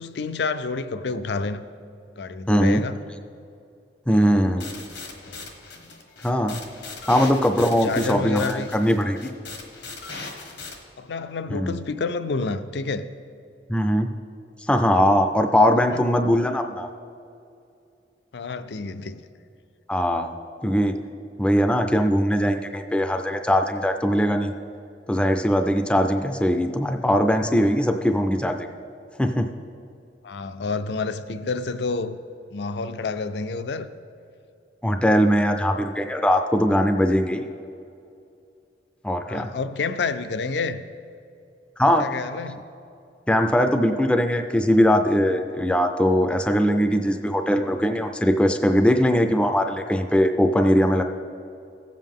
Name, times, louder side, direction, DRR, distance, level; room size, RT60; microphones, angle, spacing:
voice 1, 0.0-1.6 2.2-3.0 4.2-4.4 5.2-5.5 7.6-8.7 11.0-13.1 15.9-16.0 18.3-19.2 30.2-32.2 32.5-33.9 39.2-40.8 42.0-42.6, left 4 dB, 70° left, 0.4 m, -29 dB
voice 2, 2.5-2.8 4.1-4.7 6.2-6.6 7.1-9.3 11.5-11.8 13.7-14.1 14.7-16.9 19.9-20.3 20.6-20.9 21.4-24.5 25.1-28.7 29.2-29.5 34.8-37.5 39.0-39.5 41.8-42.1 43.3-51.0, equal, 5° left, 0.4 m, -20 dB
sound 1, 4.6-10.7, left 3 dB, 90° left, 1.2 m, -39 dB
15.5 x 7.5 x 3.6 m
head